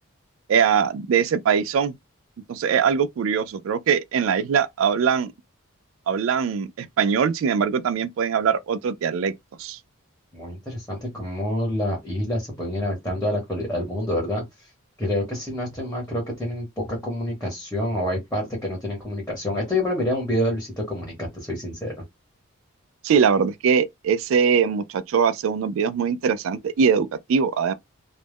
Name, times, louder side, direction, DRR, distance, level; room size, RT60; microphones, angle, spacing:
voice 1, 0.5-1.9 2.5-5.3 6.1-9.8 23.0-27.7, right 6 dB, 65° right, 0.3 m, -22 dB
voice 2, 10.3-14.7 15.0-21.9, left 1 dB, 5° left, 0.9 m, -27 dB
2.3 x 2.0 x 3.4 m
head